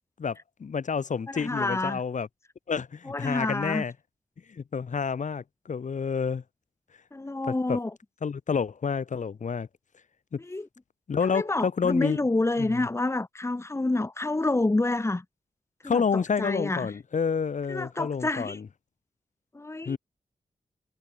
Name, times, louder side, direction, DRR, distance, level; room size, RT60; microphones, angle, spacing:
voice 1, 0.2-2.3 2.7-3.9 4.5-6.4 7.5-7.8 8.2-9.7 10.3-10.4 11.1-12.2 12.6-12.9 15.8-18.7 19.8-20.0, left 6 dB, 65° left, 3.4 m, -29 dB
voice 2, 1.3-2.0 3.1-3.8 7.1-7.9 10.4-10.7 11.2-15.2 15.8-16.9 17.7-18.6 19.5-20.0, left 2 dB, 20° left, 1.9 m, -28 dB
wide cardioid pair, 110°, 14 cm